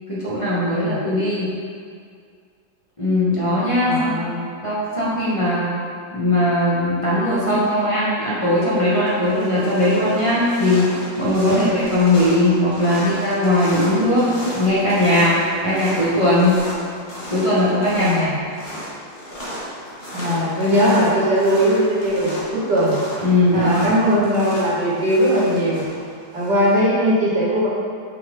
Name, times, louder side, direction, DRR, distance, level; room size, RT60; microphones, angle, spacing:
voice 1, 0.1-1.5 3.0-4.2 4.6-5.7 6.1-10.9 11.2-14.2 14.5-15.3 15.6-16.6 17.3-18.3 23.2-23.9, left 1 dB, 20° left, -10 dB, 1.4 m, -19 dB
voice 2, 0.7-1.1 3.8-4.4 11.4-11.5 17.9-18.4 20.1-23.0 23.5-25.8 26.3-27.7, equal, 85° right, -7 dB, 2.3 m, -19 dB
sound 1, 8.2-8.6 8.9-26.8, equal, 35° left, 1.9 m, -34 dB
6.1 x 5.9 x 3.8 m, 2.2 s
omnidirectional pair, 1.8 m